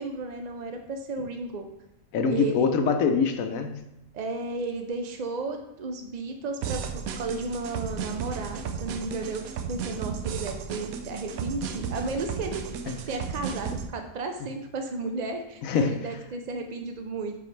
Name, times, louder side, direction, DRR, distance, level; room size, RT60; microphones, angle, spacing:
voice 1, 0.0-1.7 2.3-2.7 4.1-12.8 13.1-17.4, right 3 dB, 70° right, 5 dB, 0.4 m, -33 dB
voice 2, 2.1-3.8 12.9-13.0 15.6-15.9, left 5 dB, 85° left, 7 dB, 1.1 m, -24 dB
sound 1, 6.6-13.9, right 6 dB, 90° right, 1.1 m, -34 dB
9.4 x 3.9 x 3.3 m, 0.86 s
omnidirectional pair, 1.4 m